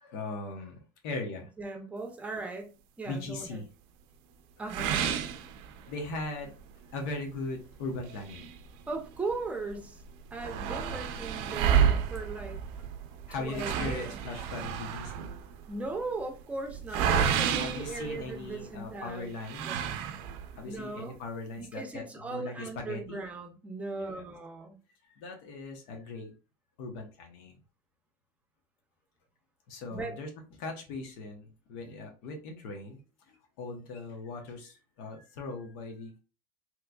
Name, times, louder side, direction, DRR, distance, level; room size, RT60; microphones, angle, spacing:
voice 1, 0.0-1.5 3.1-3.6 4.8-4.9 5.9-6.6 6.9-8.5 13.3-15.3 17.6-19.9 20.5-23.2 23.9-24.2 25.1-26.3 26.8-27.6 29.7-30.3 30.6-33.0 33.3-36.2, left 3 dB, 90° left, 3 dB, 0.8 m, -39 dB
voice 2, 1.6-3.6 4.6-5.1 8.9-10.0 10.3-12.6 13.4-14.2 15.7-19.3 19.6-20.1 20.6-21.2 21.6-24.8 29.9-30.2, right 3 dB, 15° right, 3 dB, 0.6 m, -38 dB
sound 1, 4.7-6.2 6.6-6.7 7.1-7.2 8.0-9.4 9.7-9.8 10.0-18.7 19.4-20.6, right 8 dB, 70° right, 0.5 m, -30 dB
3.6 x 3.0 x 2.2 m, 0.32 s
cardioid pair, 150°, 10 cm